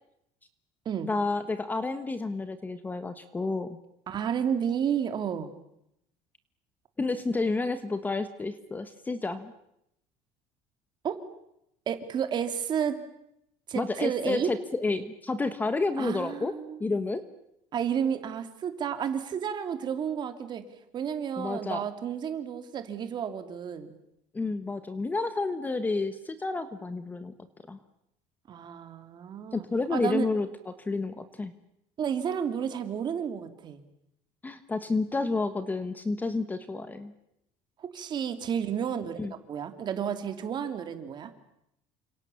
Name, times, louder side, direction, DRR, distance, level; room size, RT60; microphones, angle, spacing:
voice 1, 1.0-3.8 7.0-9.5 13.7-16.5 16.8-17.2 21.4-21.8 24.3-27.3 27.7-27.8 29.5-31.5 34.4-37.1 39.2-39.3, left 3 dB, 15° left, 11 dB, 1.3 m, -30 dB
voice 2, 4.1-5.5 11.0-11.2 11.9-13.0 13.7-14.5 16.0-17.1 17.7-20.6 20.9-24.0 28.5-29.6 29.9-30.2 32.0-33.8 37.8-39.2 39.5-41.3, right 8 dB, 35° right, 8 dB, 2.9 m, -31 dB
29.5 x 26.5 x 7.1 m, 0.80 s
cardioid pair, 165°, 13 cm